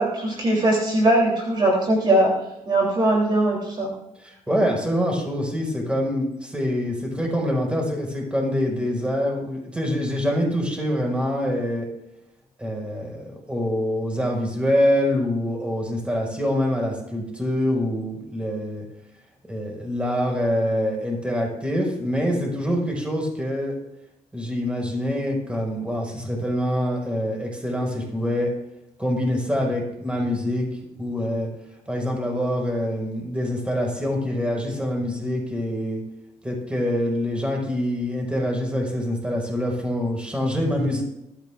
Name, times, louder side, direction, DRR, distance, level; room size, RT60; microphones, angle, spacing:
voice 1, 0.0-2.3 2.7-3.9, right 1 dB, 40° right, -2 dB, 3.4 m, -20 dB
voice 2, 4.2-11.9 12.6-18.9 19.5-23.8 24.3-28.5 29.0-30.7 31.0-31.5 31.9-36.0 36.4-41.0, equal, 10° right, 0 dB, 5.2 m, -25 dB
21.5 x 13.5 x 2.5 m, 0.87 s
cardioid pair, 110°, 12 cm